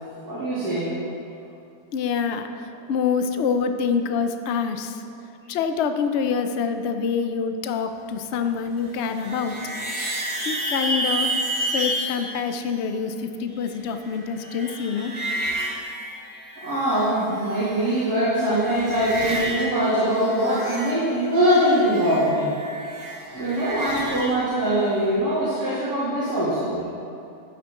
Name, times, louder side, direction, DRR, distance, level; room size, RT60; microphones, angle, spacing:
voice 1, 0.2-0.8 16.6-22.5 23.3-26.8, equal, 60° right, -12 dB, 3.1 m, -22 dB
voice 2, 1.9-5.0 5.5-9.6 10.4-11.3 11.7-15.1, left 6 dB, 65° left, 7 dB, 0.7 m, -26 dB
sound 1, 8.8-12.2 13.6-17.0 17.2-18.0 18.3-19.7 19.9-24.3, right 1 dB, 20° right, 2.4 m, -30 dB
13.0 x 9.4 x 3.7 m, 2.6 s
omnidirectional pair, 1.8 m